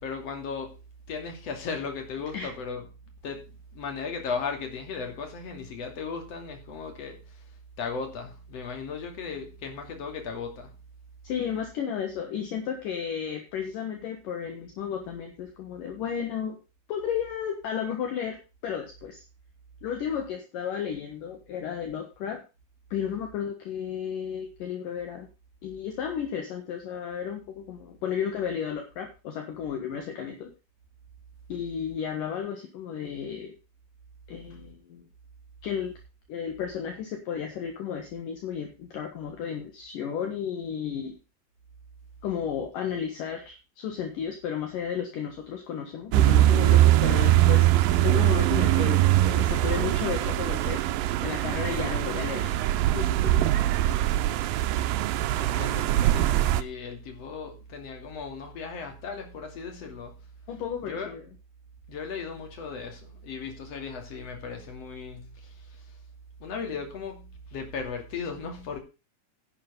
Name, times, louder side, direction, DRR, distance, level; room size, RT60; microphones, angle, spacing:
voice 1, 0.0-0.7 1.1-2.9 3.2-7.4 7.8-10.7 55.4-60.1 60.8-61.1 61.9-65.8 66.4-68.8, left 5 dB, 45° left, 3.4 m, -36 dB
voice 2, 11.2-16.6 16.9-18.4 18.6-19.2 19.8-22.4 22.9-25.3 25.6-30.5 31.5-33.5 34.3-35.1 35.6-35.9 36.3-41.2 42.2-47.7 48.0-50.8 51.2-52.6 52.9-53.8 60.5-61.2, left 8 dB, 65° left, 2.9 m, -33 dB
sound 1, 46.1-56.6, right 14 dB, 75° right, 2.3 m, -22 dB
11.0 x 7.8 x 5.5 m
omnidirectional pair, 4.6 m